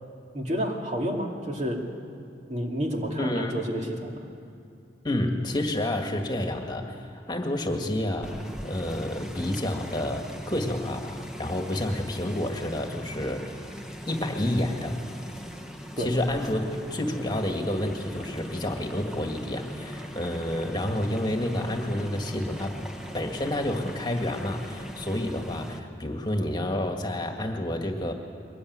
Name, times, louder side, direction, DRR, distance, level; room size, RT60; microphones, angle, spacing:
voice 1, 0.3-1.9 2.5-4.3 16.0-16.2, equal, 40° right, 1 dB, 2.7 m, -30 dB
voice 2, 3.2-3.5 5.0-13.6 14.1-15.0 16.0-22.8 23.1-28.1, left 1 dB, 25° left, 3 dB, 1.9 m, -29 dB
sound 1, 8.2-25.8, equal, 5° right, 1.4 m, -40 dB
22.5 x 20.0 x 9.6 m, 2.6 s
head